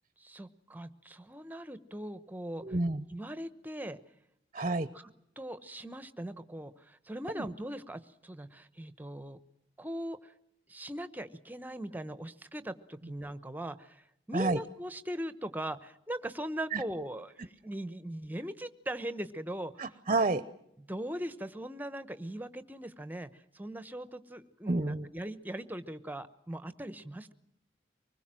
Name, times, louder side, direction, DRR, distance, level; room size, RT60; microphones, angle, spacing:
voice 1, 0.2-2.6 3.1-4.0 4.9-5.1 5.4-9.4 9.8-10.3 10.7-20.0 20.8-27.3, right 1 dB, 10° right, 12 dB, 1.0 m, -40 dB
voice 2, 2.6-3.0 4.5-4.9 7.3-7.4 14.3-14.6 16.7-16.8 19.8-20.4 24.7-25.1, right 2 dB, 35° right, 14 dB, 0.8 m, -29 dB
25.0 x 20.5 x 7.6 m, 0.79 s
head